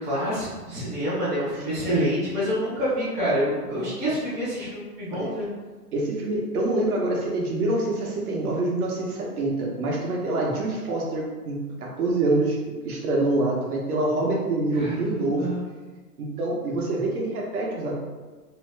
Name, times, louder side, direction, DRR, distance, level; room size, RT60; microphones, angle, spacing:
voice 1, 0.0-5.5 14.7-15.6, equal, 10° right, -14 dB, 0.5 m, -27 dB
voice 2, 5.9-15.5 16.2-17.9, right 2 dB, 65° right, -2 dB, 0.9 m, -26 dB
2.8 x 2.1 x 3.2 m, 1.3 s
hypercardioid pair, 155°, 48 cm